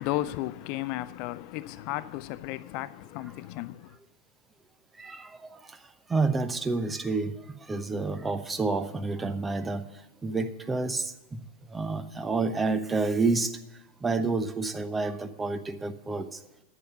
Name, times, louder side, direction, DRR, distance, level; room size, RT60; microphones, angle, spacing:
voice 1, 0.0-3.9, left 16 dB, 45° left, 0.4 m, -34 dB
voice 2, 6.1-7.3 7.7-9.9 10.2-11.4 11.7-13.5 14.0-16.3, right 3 dB, 15° right, 0.9 m, -29 dB
10.0 x 9.6 x 6.8 m
figure-of-eight pair, 90°, 0 cm